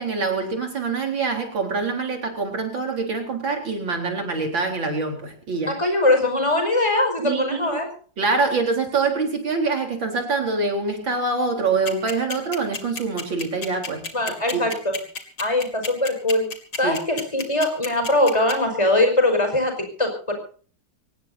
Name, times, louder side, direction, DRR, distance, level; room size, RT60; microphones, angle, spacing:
voice 1, 0.0-5.7 7.2-7.7 8.2-14.0 14.5-14.7 16.8-17.0, right 4 dB, 80° right, 3 dB, 4.7 m, -25 dB
voice 2, 5.7-7.9 14.1-14.9 15.4-16.5 16.8-20.3, left 1 dB, 15° left, 4 dB, 5.4 m, -21 dB
sound 1, 11.8-18.5, left 5 dB, 55° left, 3.0 m, -30 dB
24.5 x 19.0 x 2.8 m, 0.43 s
omnidirectional pair, 2.0 m